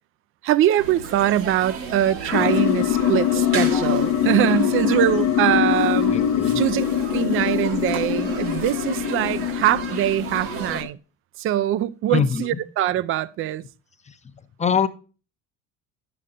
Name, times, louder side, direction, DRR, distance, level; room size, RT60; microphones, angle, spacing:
voice 1, 0.4-6.1 6.5-6.9 7.1-11.0 11.4-13.6, right 12 dB, 35° right, 0.4 m, -22 dB
sound 1, 0.8-10.8, right 5 dB, 70° right, 1.4 m, -34 dB
sound 2, 2.3-10.9, left 11 dB, 50° left, 0.7 m, -23 dB
voice 2, 6.1-6.6 12.1-12.6 14.1-14.2 14.6-14.9, left 7 dB, 20° left, 0.7 m, -23 dB
10.5 x 6.8 x 2.6 m
hypercardioid pair, 65°, 37 cm